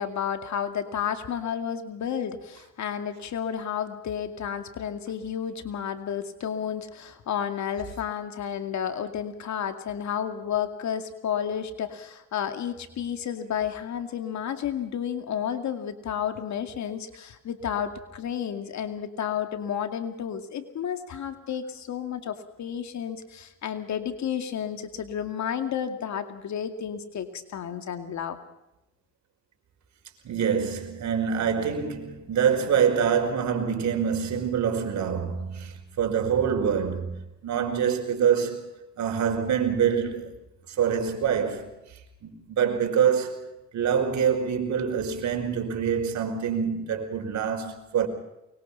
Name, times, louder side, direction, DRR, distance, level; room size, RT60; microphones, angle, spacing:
voice 1, 0.0-28.4, left 8 dB, 70° left, 2.3 m, -31 dB
voice 2, 30.2-38.7 39.0-40.3 40.7-41.7 42.2-48.1, right 7 dB, 70° right, 5.2 m, -25 dB
24.0 x 22.5 x 5.7 m
cardioid pair, 90°, 30 cm